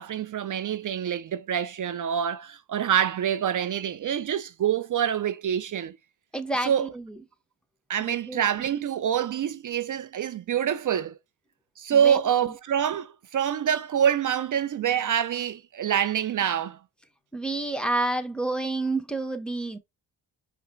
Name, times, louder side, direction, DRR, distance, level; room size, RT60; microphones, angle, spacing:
voice 1, 0.0-6.0 6.6-6.9 7.9-11.2 11.8-16.8, right 9 dB, 45° right, 0.5 m, -26 dB
voice 2, 6.3-7.1 8.0-8.4 12.0-12.2 17.3-19.8, right 2 dB, ahead, 1.0 m, -29 dB
4.8 x 2.2 x 4.4 m
cardioid pair, 60°, 43 cm